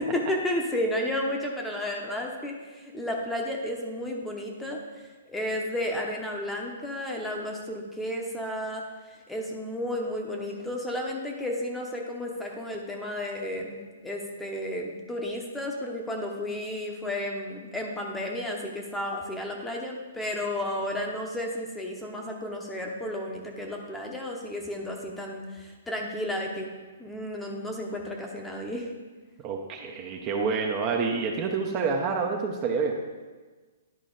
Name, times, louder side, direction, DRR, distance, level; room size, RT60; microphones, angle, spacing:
voice 1, 0.0-4.8 5.3-8.8 9.3-26.7 27.0-28.9, left 1 dB, 5° left, 0 dB, 0.9 m, -32 dB
voice 2, 29.4-33.0, right 5 dB, 30° right, 2 dB, 0.8 m, -28 dB
10.5 x 4.0 x 3.9 m, 1.3 s
hypercardioid pair, 140°, 0 cm